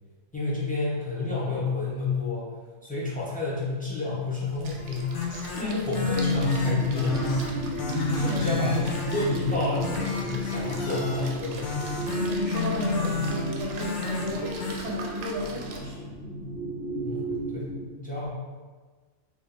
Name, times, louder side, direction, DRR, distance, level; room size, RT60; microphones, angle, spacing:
voice 1, 0.3-2.5 2.8-5.1 5.6-7.3 8.2-11.9 17.0-17.7 18.0-18.3, left 3 dB, 10° left, -7 dB, 0.5 m, -30 dB
Splash splatter, 4.5-15.8, right 3 dB, 70° right, 0.9 m, -43 dB
sound 1, 4.8-14.8, left 4 dB, 70° left, 1.0 m, -31 dB
sound 2, 6.0-17.8, equal, 25° left, 1.3 m, -32 dB
voice 2, 8.1-8.6 12.1-16.1, equal, 35° right, -5 dB, 0.8 m, -33 dB
3.1 x 2.7 x 3.8 m, 1.4 s
omnidirectional pair, 1.4 m